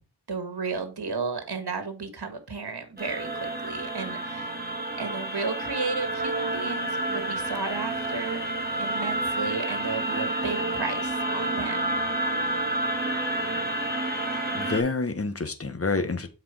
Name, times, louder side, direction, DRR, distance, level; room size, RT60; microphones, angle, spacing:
voice 1, 0.3-4.5 5.0-11.8, right 4 dB, 65° right, 1.8 m, -33 dB
sound 1, 3.0-14.8, right 1 dB, 20° right, 2.3 m, -29 dB
voice 2, 14.3-16.3, left 3 dB, 35° left, 1.2 m, -28 dB
7.5 x 4.7 x 4.6 m
wide cardioid pair, 65°, 41 cm